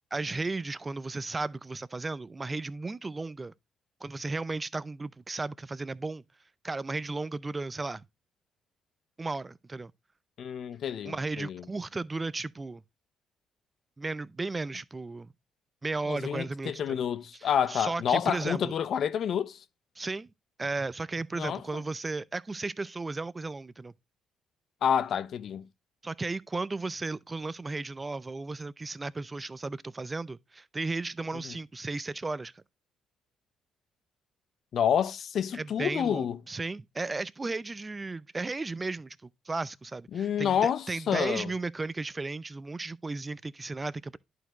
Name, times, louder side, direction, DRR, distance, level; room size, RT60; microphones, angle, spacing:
voice 1, 0.1-3.5 4.0-6.2 6.6-8.0 9.2-9.9 11.0-12.8 14.0-15.3 15.8-17.0 17.4-18.7 20.0-20.3 20.6-23.9 26.0-32.6 35.5-39.2 39.5-44.2, right 3 dB, 25° right, 0.5 m, -35 dB
voice 2, 10.4-11.6 16.1-19.6 21.4-21.6 24.8-25.7 31.4-31.5 34.7-36.4 40.1-41.5, left 8 dB, 60° left, 0.7 m, -29 dB
11.0 x 4.7 x 3.0 m
hypercardioid pair, 55°, 0 cm